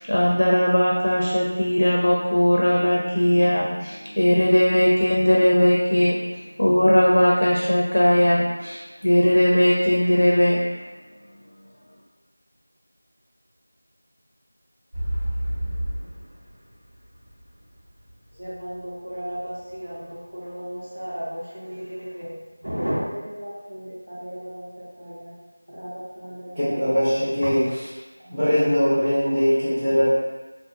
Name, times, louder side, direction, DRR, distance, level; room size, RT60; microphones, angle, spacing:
voice 1, 0.1-6.2 6.6-10.6, equal, 90° left, -2 dB, 0.4 m, -19 dB
sound 1, 14.9-18.8 19.4-19.5, equal, 40° right, 1.0 m, -30 dB
voice 2, 18.4-22.4 22.6-25.3 25.7-26.9 28.4-28.7, equal, 75° right, -7 dB, 0.8 m, -34 dB
voice 3, 26.6-27.9 28.3-30.1, equal, 5° right, -21 dB, 0.6 m, -21 dB
2.7 x 2.0 x 2.7 m, 1.2 s
figure-of-eight pair, 180°, 0 cm